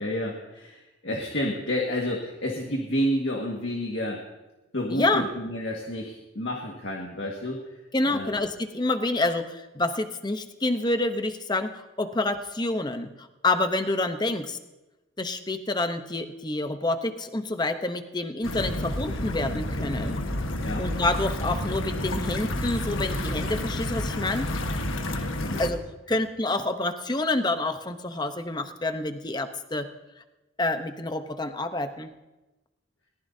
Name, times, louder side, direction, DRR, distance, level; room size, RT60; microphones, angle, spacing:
voice 1, 0.0-4.2 4.7-7.6 8.1-8.4 20.0-20.2 20.6-20.8 25.4-25.6, equal, 70° left, -1 dB, 1.8 m, -30 dB
voice 2, 4.9-5.2 7.9-14.6 15.2-20.2 20.8-24.5 25.6-25.8 26.1-29.9 30.6-32.1, left 2 dB, 20° left, 8 dB, 0.9 m, -28 dB
sound 1, 18.4-25.7, left 1 dB, 85° left, 1.4 m, -30 dB
22.0 x 18.5 x 2.8 m, 1.1 s
head